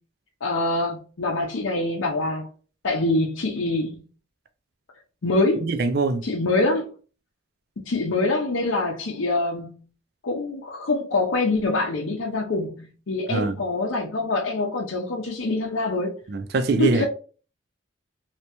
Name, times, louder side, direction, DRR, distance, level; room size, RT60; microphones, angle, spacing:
voice 1, 0.4-2.5 2.8-4.0 5.2-5.7 6.2-6.9 7.9-9.7 10.2-16.1 16.8-17.1, left 2 dB, 75° left, 0.6 m, -25 dB
voice 2, 5.6-6.2 13.3-13.6 16.3-17.1, right 3 dB, 50° right, 0.4 m, -23 dB
3.2 x 2.8 x 2.9 m
head